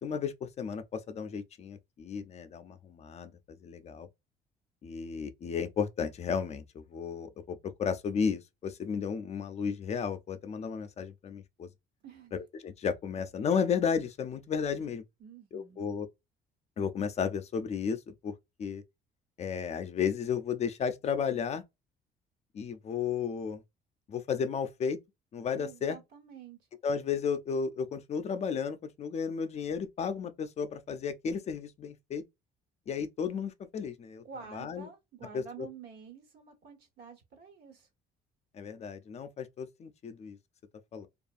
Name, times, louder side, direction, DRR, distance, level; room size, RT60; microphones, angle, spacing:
voice 1, 0.0-3.3 3.6-4.1 4.8-11.7 12.3-15.0 15.5-16.1 16.8-18.3 18.6-18.8 19.4-21.6 22.5-23.6 24.1-25.0 25.3-26.0 26.8-32.2 32.9-34.2 34.5-34.9 35.3-35.4 38.5-40.4 40.9-41.1, left 6 dB, 40° left, 0.4 m, -33 dB
voice 2, 12.0-12.4 15.2-15.9 25.5-26.7 34.2-37.9, right 6 dB, 70° right, 1.3 m, -49 dB
2.6 x 2.4 x 2.4 m
cardioid pair, 110°, 17 cm